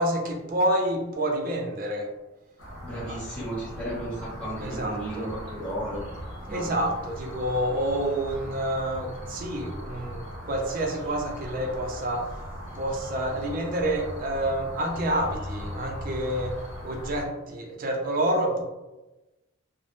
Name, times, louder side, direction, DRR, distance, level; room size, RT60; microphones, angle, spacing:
voice 1, 0.0-2.1 3.1-3.2 4.6-5.3 6.5-12.4 12.7-16.6 16.8-18.6, right 1 dB, 40° right, 2 dB, 0.4 m, -28 dB
sound 1, 2.6-17.3, equal, 85° left, 1.0 m, -39 dB
voice 2, 2.8-6.0 6.5-6.8, right 1 dB, 5° left, -9 dB, 1.1 m, -34 dB
3.4 x 2.1 x 2.5 m, 1.0 s
head